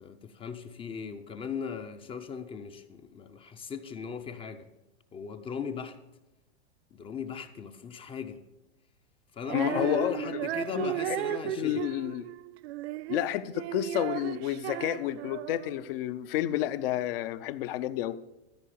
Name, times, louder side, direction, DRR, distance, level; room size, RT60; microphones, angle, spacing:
voice 1, 0.0-4.7 5.1-6.0 6.9-8.4 9.3-11.8, left 6 dB, 15° left, 0.5 m, -38 dB
Female singing, 9.4-15.9, right 14 dB, 70° right, 0.5 m, -35 dB
voice 2, 9.5-10.3 10.7-11.2 11.6-12.3 13.1-18.2, left 13 dB, 55° left, 0.7 m, -30 dB
13.5 x 4.7 x 8.3 m
supercardioid pair, 145°, 34 cm